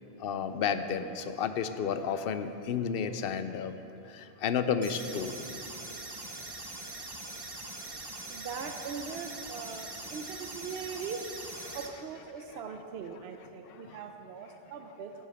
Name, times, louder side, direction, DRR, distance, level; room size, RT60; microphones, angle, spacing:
voice 1, 0.2-3.7 4.0-5.4 11.7-11.8 13.6-14.0, left 7 dB, 65° left, 10 dB, 0.8 m, -32 dB
sound 1, 4.8-11.9, right 2 dB, 25° right, 0.8 m, -42 dB
voice 2, 8.3-11.3 11.7-15.1, right 6 dB, 75° right, 5 dB, 0.9 m, -41 dB
14.5 x 10.5 x 3.6 m, 2.9 s
omnidirectional pair, 1.1 m